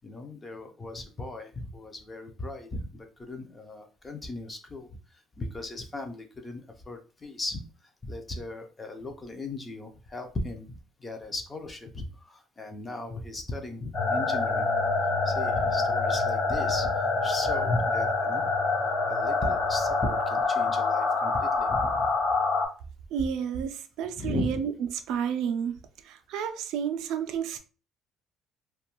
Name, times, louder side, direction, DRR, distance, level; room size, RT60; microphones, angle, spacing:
voice 1, 0.0-5.0 5.4-7.6 8.0-14.8 15.2-18.5 19.1-22.1 24.2-24.6, left 2 dB, 15° left, 0.4 m, -37 dB
sound 1, 13.9-22.7, left 3 dB, 35° left, 0.8 m, -26 dB
voice 2, 23.1-24.7 25.1-25.8 26.0-27.6, right 7 dB, 65° right, 0.3 m, -30 dB
2.5 x 2.2 x 2.9 m
cardioid pair, 175°, 0 cm